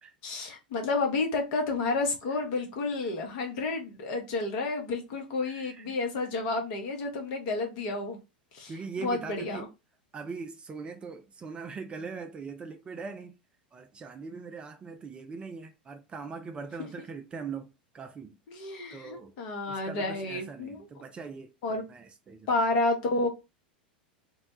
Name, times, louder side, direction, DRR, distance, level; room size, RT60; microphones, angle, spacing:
voice 1, 0.2-8.2 8.5-8.7 9.0-9.7 18.5-20.9 21.6-21.8 22.5-23.3, left 3 dB, 50° left, 0.8 m, -30 dB
voice 2, 2.4-2.7 5.4-6.0 8.7-9.7 10.1-13.3 13.7-18.4 18.9-19.3 19.7-22.5, right 5 dB, 20° right, 0.3 m, -41 dB
2.2 x 2.1 x 2.9 m
figure-of-eight pair, 85°, 5 cm